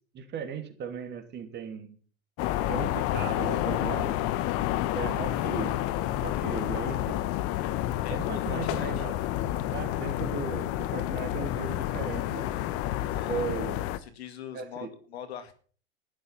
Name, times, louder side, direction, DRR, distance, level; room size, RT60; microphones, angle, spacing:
voice 1, 0.1-1.9 2.7-4.2 4.9-5.8 6.2-7.2 8.1-9.1 9.7-12.5 13.3-13.8 14.5-14.9, right 7 dB, 35° right, 8 dB, 2.8 m, -37 dB
sound 1, 2.4-14.0, left 13 dB, 45° left, 1.2 m, -29 dB
voice 2, 8.0-9.0 13.1-15.5, left 9 dB, 75° left, 10 dB, 2.3 m, -43 dB
12.5 x 11.0 x 5.7 m, 0.42 s
hypercardioid pair, 100°, 32 cm